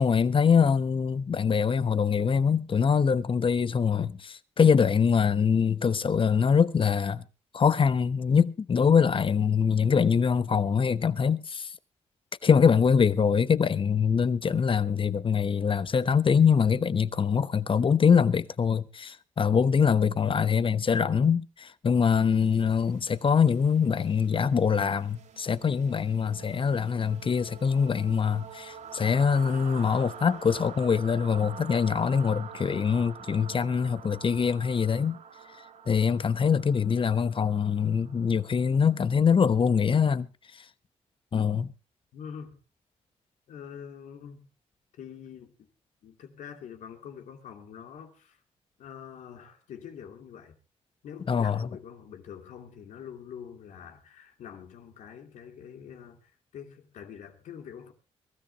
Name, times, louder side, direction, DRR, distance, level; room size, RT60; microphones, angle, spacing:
voice 1, 0.0-7.2 7.5-11.7 12.4-35.2 35.9-40.3 41.3-41.7 51.3-51.7, left 6 dB, 45° left, 1.0 m, -24 dB
sound 1, 22.2-40.0, right 7 dB, 75° right, 4.4 m, -46 dB
voice 2, 42.1-42.6 43.5-44.5 45.0-45.7 46.0-48.4 48.8-50.5 51.0-57.9, left 8 dB, 80° left, 2.7 m, -45 dB
23.0 x 13.5 x 2.9 m
cardioid pair, 70°, 13 cm